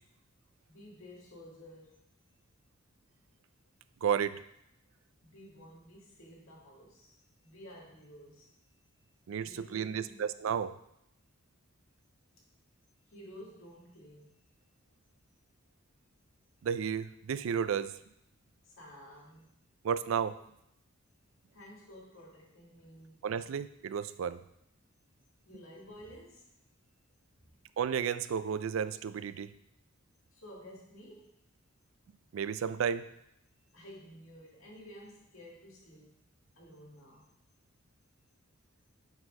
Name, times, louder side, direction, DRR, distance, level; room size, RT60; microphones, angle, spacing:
voice 1, 0.7-2.0 5.2-7.1 7.4-9.1 9.4-10.2 13.1-14.4 18.6-19.5 21.5-23.2 25.4-26.5 30.3-31.3 33.7-36.2 36.5-37.3, equal, 80° left, -3 dB, 2.1 m, -52 dB
voice 2, 4.0-4.4 9.3-10.8 16.6-17.9 19.8-20.4 23.2-24.4 27.8-29.5 32.3-33.1, right 7 dB, 75° right, 14 dB, 0.3 m, -32 dB
7.2 x 4.1 x 5.2 m, 0.78 s
head